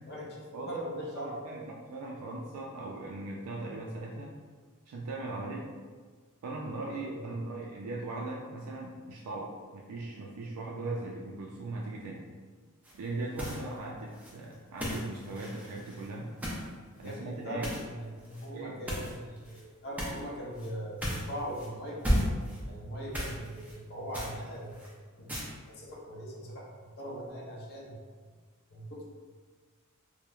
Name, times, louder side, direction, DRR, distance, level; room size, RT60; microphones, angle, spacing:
voice 1, 0.1-1.5 6.9-7.3 13.5-13.7 17.0-22.0 22.7-24.8 25.2-25.3 25.7-27.9 28.7-29.0, equal, 50° left, -3 dB, 0.6 m, -40 dB
voice 2, 1.2-4.3 4.9-5.7 6.4-12.3 12.9-16.3 17.0-17.7 18.5-18.8 25.2-25.3, right 2 dB, 90° right, -3 dB, 0.3 m, -39 dB
sound 1, 12.8-13.1 13.3-13.8 14.1-16.7 17.0-17.2 17.6-17.8 18.2-18.5 18.9-19.6 20.0-20.3 20.6-20.7 21.0-21.7 22.0-22.6 23.1-23.8 24.1-24.9 25.3-25.5, equal, 5° right, 0.4 m, -34 dB
2.9 x 2.1 x 2.3 m, 1.5 s
head